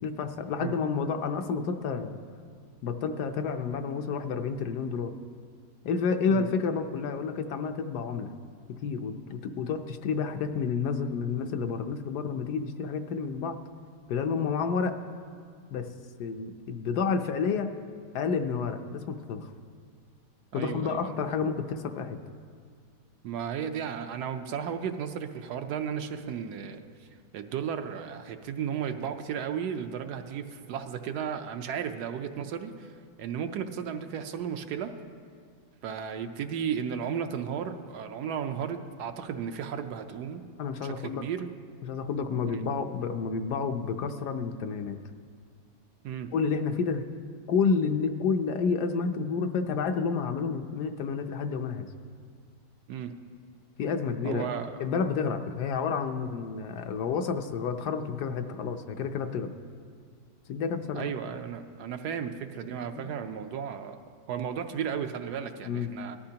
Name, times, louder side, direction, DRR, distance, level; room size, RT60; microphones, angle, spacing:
voice 1, 0.0-2.2 2.8-5.1 5.8-8.3 8.8-13.6 14.1-15.0 15.7-15.9 16.2-17.7 18.1-19.5 20.5-22.2 40.6-41.2 41.8-45.0 46.3-47.0 47.5-51.9 53.8-54.5 54.8-59.5 60.5-61.1 63.0-63.1 65.6-65.9, left 5 dB, 75° left, 7 dB, 1.3 m, -30 dB
voice 2, 20.5-21.2 23.2-26.8 27.3-32.9 33.2-35.0 35.8-40.4 40.8-41.5 46.0-46.3 52.9-53.2 54.2-54.8 60.9-64.0 64.3-66.2, right 8 dB, 75° right, 7 dB, 1.2 m, -34 dB
18.5 x 13.0 x 2.9 m, 2.1 s
omnidirectional pair, 1.8 m